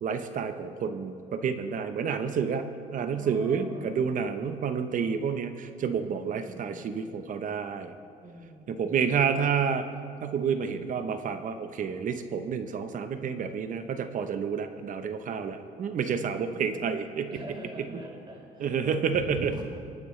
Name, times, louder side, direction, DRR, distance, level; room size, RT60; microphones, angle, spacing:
voice 1, 0.0-2.7 2.9-7.9 8.7-9.8 10.2-17.3 18.6-19.6, right 6 dB, 50° right, 8 dB, 0.9 m, -29 dB
voice 2, 3.2-4.1 5.9-7.0 8.2-9.0 16.2-16.9 17.3-19.6, right 1 dB, 30° right, -1 dB, 4.1 m, -44 dB
28.0 x 9.5 x 3.3 m, 2.4 s
cardioid pair, 110°, 17 cm